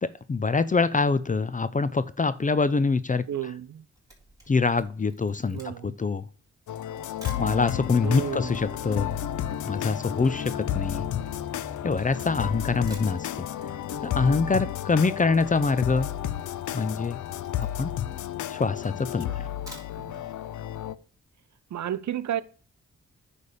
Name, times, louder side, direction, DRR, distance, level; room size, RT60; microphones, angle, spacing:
voice 1, 0.0-3.3 4.5-6.3 7.4-9.2 9.6-11.0 11.8-13.5 14.0-16.1 16.7-17.2 17.8-17.9 18.5-19.5, left 4 dB, 25° left, 0.5 m, -25 dB
voice 2, 3.3-3.9 5.5-5.9 8.0-8.6 16.2-16.4 19.3-19.4 19.9-20.2 21.7-22.4, right 10 dB, 70° right, 0.7 m, -33 dB
Camera, 3.7-7.5 8.2-8.3 8.5-12.2 12.6-12.7 12.9-13.7 14.0-14.1 14.4-14.5 14.6-15.1 15.4-15.6 16.0-18.0 18.5-18.6 19.4-20.2 20.6-20.7 21.0-21.1, equal, 10° right, 3.7 m, -51 dB
sound 1, 6.7-20.9, left 11 dB, 90° left, 0.5 m, -32 dB
sound 2, 8.0-14.1, left 5 dB, 55° left, 0.9 m, -40 dB
9.6 x 3.4 x 6.7 m
cardioid pair, 80°, 29 cm